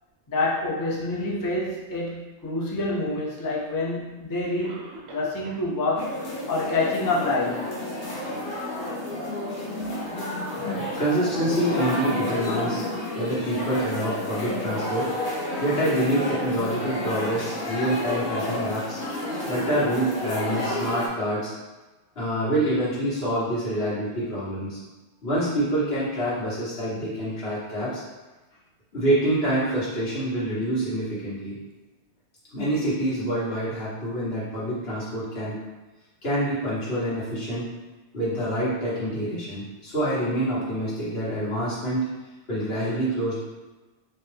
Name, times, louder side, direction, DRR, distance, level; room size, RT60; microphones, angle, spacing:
voice 1, 0.3-7.7, left 2 dB, 25° left, -4 dB, 0.5 m, -27 dB
Cough, 3.5-3.6 4.6-5.7 6.0-6.1 6.7-6.8 7.3-7.4, right 2 dB, 85° right, 0.9 m, -43 dB
sound 1, 6.0-21.1, left 1 dB, 55° left, 1.1 m, -31 dB
voice 2, 10.6-12.8 13.2-15.1 15.6-19.0 19.4-21.5 22.1-24.8 25.2-28.0 28.9-31.6 32.5-35.6 36.2-37.7 38.1-42.1 42.5-43.4, right 1 dB, 75° left, -9 dB, 1.7 m, -26 dB
4.4 x 2.4 x 3.3 m, 1.2 s
omnidirectional pair, 1.0 m